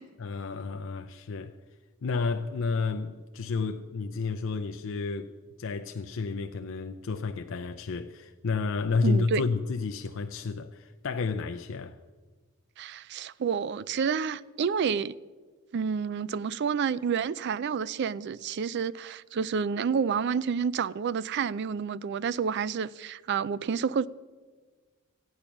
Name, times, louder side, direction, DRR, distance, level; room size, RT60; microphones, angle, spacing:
voice 1, 0.2-1.5 2.0-5.3 5.6-11.9, left 4 dB, 65° left, 0.5 m, -31 dB
voice 2, 9.0-9.4 12.8-15.2 15.7-24.1, right 6 dB, 55° right, 0.4 m, -29 dB
15.0 x 8.8 x 5.9 m
head